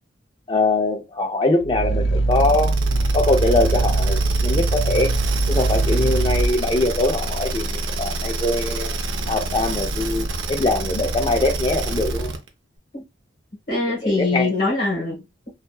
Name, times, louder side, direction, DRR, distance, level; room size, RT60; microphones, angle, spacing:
voice 1, 0.5-2.7 3.1-5.1 5.5-8.9 9.3-12.3 13.9-14.5, left 2 dB, 25° left, 0.5 m, -22 dB
Growling, 1.6-6.6, right 2 dB, 80° left, 0.5 m, -21 dB
sound 1, 2.3-12.5, right 2 dB, 90° right, 0.5 m, -27 dB
voice 2, 13.7-15.5, left 2 dB, 50° left, 1.0 m, -23 dB
2.7 x 2.3 x 2.3 m
head